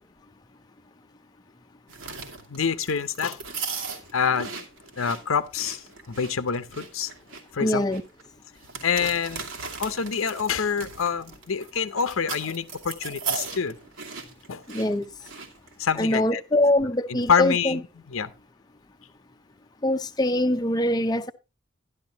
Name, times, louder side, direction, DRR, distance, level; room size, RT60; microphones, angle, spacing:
sound 1, 1.9-15.9, right 4 dB, 85° right, 2.5 m, -37 dB
voice 1, 2.5-3.4 4.1-4.5 5.0-7.1 7.5-7.8 8.8-9.5 9.8-13.8 14.5-14.6 15.8-16.4 16.8-17.8 18.1-18.3, left 6 dB, 85° left, 0.7 m, -26 dB
voice 2, 7.6-8.0 14.7-15.1 16.0-17.8 19.8-21.3, left 1 dB, 20° left, 0.6 m, -23 dB
12.5 x 11.5 x 2.9 m
head